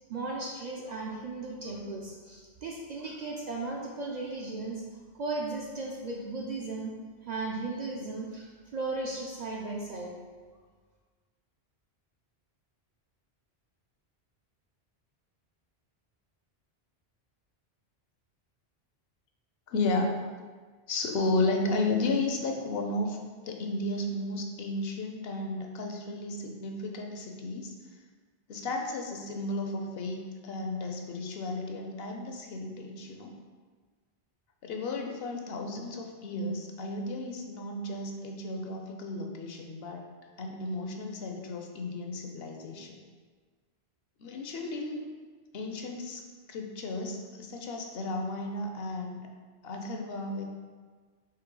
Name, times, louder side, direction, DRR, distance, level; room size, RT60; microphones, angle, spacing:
voice 1, 0.1-4.8 5.1-6.9 7.2-10.2, right 3 dB, 55° right, -2 dB, 0.5 m, -36 dB
voice 2, 19.7-20.3 20.9-23.2 23.4-27.7 28.5-33.3 34.6-40.1 40.4-42.9 44.2-45.0 45.5-46.2 46.5-49.3 49.6-50.4, left 2 dB, 70° left, 2 dB, 0.8 m, -33 dB
4.5 x 3.1 x 3.7 m, 1.5 s
omnidirectional pair, 1.1 m